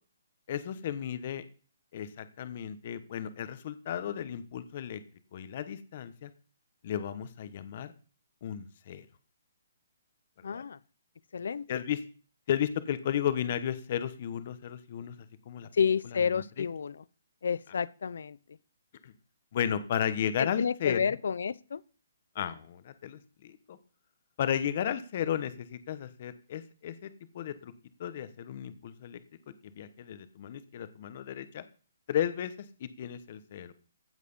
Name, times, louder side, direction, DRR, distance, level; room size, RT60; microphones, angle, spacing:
voice 1, 0.5-1.4 1.9-5.0 5.3-6.3 6.8-7.9 8.4-9.0 10.5-10.6 11.7-12.0 12.5-15.1 15.5-15.7 19.0-19.1 19.5-21.1 22.3-23.8 24.4-27.1 27.3-27.7 28.0-29.2 29.6-31.6 32.1-32.5 32.8-33.7, left 9 dB, 35° left, 1.1 m, -34 dB
voice 2, 10.4-10.8 11.3-11.8 15.7-17.0 17.4-18.4 20.4-21.8, left 6 dB, 65° left, 0.7 m, -30 dB
15.5 x 7.5 x 5.6 m
hypercardioid pair, 170°, 0 cm